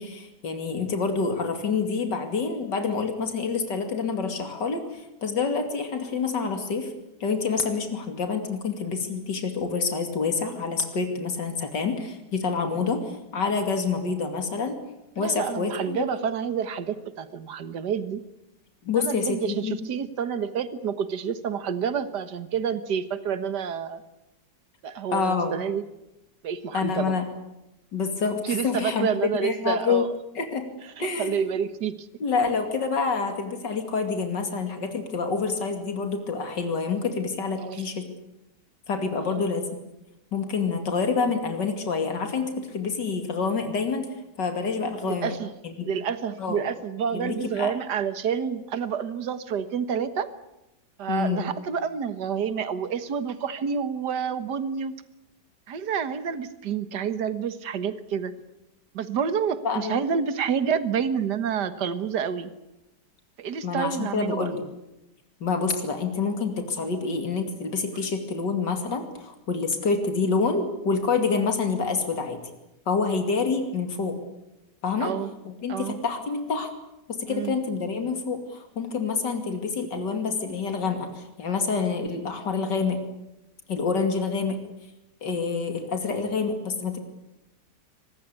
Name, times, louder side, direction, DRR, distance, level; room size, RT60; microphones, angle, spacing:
voice 1, 0.0-6.9 7.2-14.8 15.2-16.1 18.8-19.8 25.1-25.5 26.7-27.3 27.9-29.1 29.4-30.1 30.3-30.7 31.0-31.4 32.2-38.0 38.9-39.7 40.3-44.1 44.4-45.4 45.6-45.9 46.4-46.7 47.1-47.7 51.1-51.5 59.6-60.0 63.6-64.6 65.4-72.4 72.9-74.2 74.8-75.1 75.4-76.7 77.1-83.0 83.7-84.6 85.2-87.0, left 5 dB, 85° left, 6 dB, 3.2 m, -27 dB
voice 2, 15.2-18.2 19.0-24.0 24.8-25.8 26.4-27.2 28.4-30.1 31.0-32.1 37.6-37.8 39.2-39.4 45.0-45.5 45.8-50.3 51.0-55.0 55.7-58.4 58.9-62.5 63.4-64.5 75.0-75.3 75.7-76.0 77.3-77.6, right 7 dB, 70° right, 12 dB, 2.0 m, -29 dB
25.0 x 21.0 x 8.4 m, 0.92 s
omnidirectional pair, 1.8 m